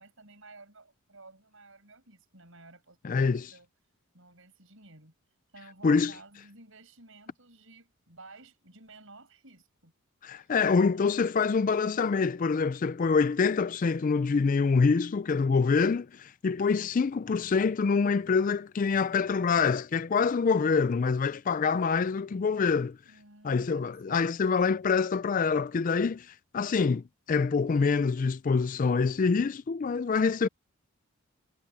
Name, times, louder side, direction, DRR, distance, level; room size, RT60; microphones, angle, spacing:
voice 1, 0.0-3.7 4.1-5.1 5.5-9.9 10.3-10.5 10.8-11.1 23.0-24.5, right 2 dB, 60° right, 7.4 m, -53 dB
voice 2, 3.0-3.5 5.8-6.1 10.2-23.0 23.4-30.5, left 5 dB, 35° left, 0.3 m, -26 dB
head